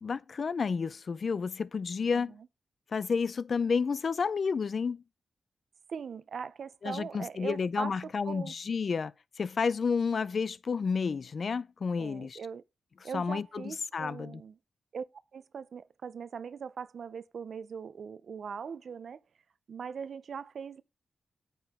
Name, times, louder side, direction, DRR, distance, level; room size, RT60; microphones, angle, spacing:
voice 1, 0.0-2.4 2.9-5.0 6.8-9.1 9.4-12.4 13.1-14.4, left 5 dB, 55° left, 0.4 m, -31 dB
voice 2, 2.1-2.5 5.9-8.5 12.0-12.6 13.0-14.6 14.9-15.1 15.3-19.2 19.7-20.8, right 6 dB, 70° right, 0.5 m, -41 dB
9.1 x 6.9 x 3.6 m
wide cardioid pair, 100°, 0 cm